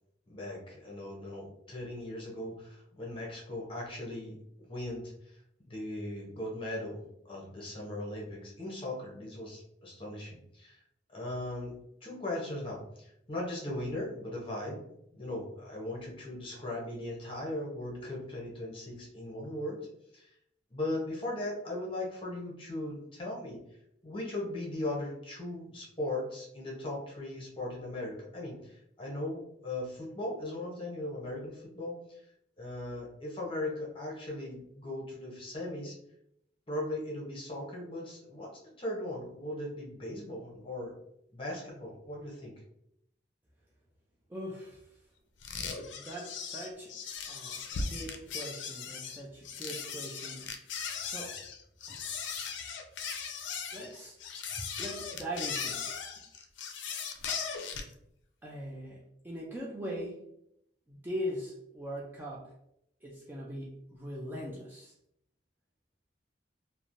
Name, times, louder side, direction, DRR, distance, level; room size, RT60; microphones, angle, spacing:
voice 1, 0.3-5.4 5.7-10.8 11.1-11.7 12.0-14.8 15.1-19.9 20.1-20.3 20.7-23.6 24.0-32.2 32.6-35.9 36.7-40.9 41.3-42.5, left 1 dB, 30° left, -3 dB, 0.8 m, -38 dB
voice 2, 44.3-44.8 45.9-47.0 47.3-50.5 51.0-51.4 51.9-52.0 53.7-54.2 54.6-55.9 58.4-60.3 60.9-62.5 63.0-64.9, equal, 10° right, -5 dB, 0.4 m, -41 dB
sound 1, 45.4-57.9, left 6 dB, 90° left, 0.4 m, -38 dB
3.0 x 2.1 x 2.5 m, 0.77 s
head